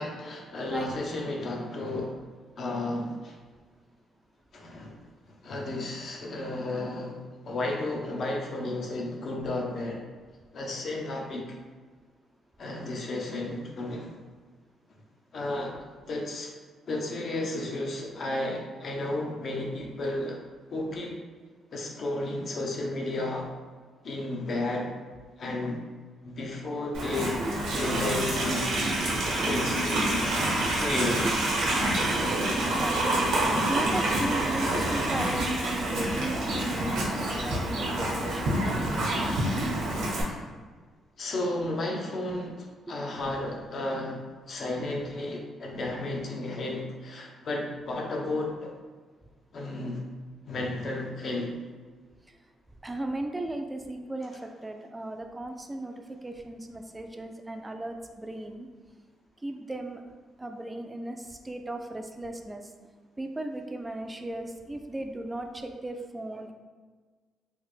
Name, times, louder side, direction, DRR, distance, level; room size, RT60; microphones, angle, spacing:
voice 1, 0.0-2.2 2.6-3.3 4.5-4.9 5.4-7.2 7.4-10.0 10.5-11.4 12.6-14.2 15.3-15.7 16.1-16.5 16.9-20.4 20.7-21.2 21.7-23.5 24.0-24.9 25.4-25.8 26.2-27.4 27.7-28.7 29.4-30.3 30.8-31.3 37.2-37.3 41.2-44.2 44.5-48.7 49.5-50.0 50.4-51.6, left 2 dB, 55° left, 0 dB, 0.6 m, -33 dB
Livestock farm animals working animals, 26.9-40.2, right 1 dB, 90° right, 0.9 m, -27 dB
voice 2, 30.5-31.3 32.5-33.3 33.7-38.8 42.9-43.0 52.8-58.7 59.4-60.0 60.4-62.6 63.2-66.5, right 1 dB, 15° right, 5 dB, 0.3 m, -36 dB
3.2 x 2.0 x 3.2 m, 1.5 s
cardioid pair, 90°, 0 cm